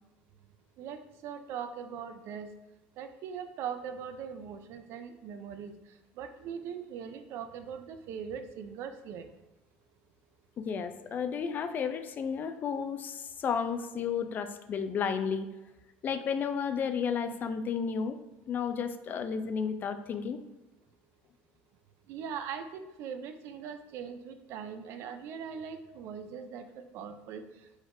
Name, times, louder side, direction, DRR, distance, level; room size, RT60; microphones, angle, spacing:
voice 1, 0.8-2.5 3.0-5.7 6.2-9.3 22.1-27.4, right 7 dB, 65° right, 9 dB, 0.5 m, -40 dB
voice 2, 10.6-15.5 16.0-18.2 18.5-20.4, left 6 dB, 40° left, 9 dB, 0.4 m, -32 dB
4.9 x 3.9 x 2.6 m, 1.0 s
supercardioid pair, 105°, 5 cm